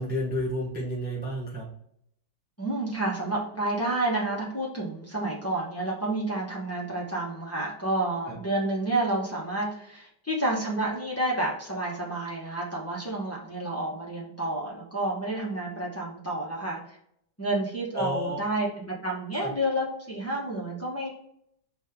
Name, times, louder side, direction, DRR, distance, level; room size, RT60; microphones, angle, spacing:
voice 1, 0.0-1.7 8.3-8.4 17.9-18.4 19.4-19.5, equal, 15° right, -3 dB, 0.4 m, -30 dB
voice 2, 2.6-17.0 17.4-21.1, right 1 dB, 10° left, -6 dB, 0.8 m, -30 dB
4.2 x 2.7 x 3.6 m, 0.71 s
omnidirectional pair, 2.0 m